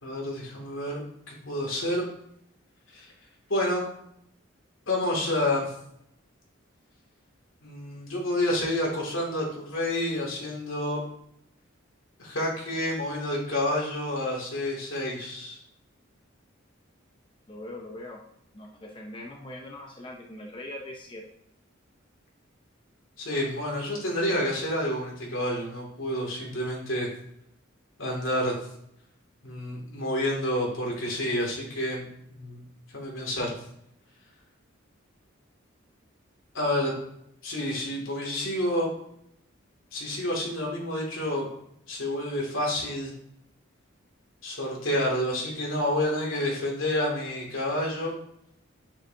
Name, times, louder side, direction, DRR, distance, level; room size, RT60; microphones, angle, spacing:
voice 1, 0.0-1.0 1.3-2.1 2.9-3.1 3.5-3.8 4.9-5.7 7.6-11.0 12.2-15.6 23.2-27.1 28.0-28.5 29.4-32.6 32.9-33.5 36.5-36.9 37.4-38.9 39.9-41.5 41.9-43.1 44.4-48.1, left 1 dB, 75° left, -2 dB, 2.4 m, -29 dB
voice 2, 17.5-18.2 18.5-21.2, left 1 dB, 25° left, 0 dB, 0.7 m, -41 dB
8.9 x 7.1 x 2.8 m, 0.74 s
head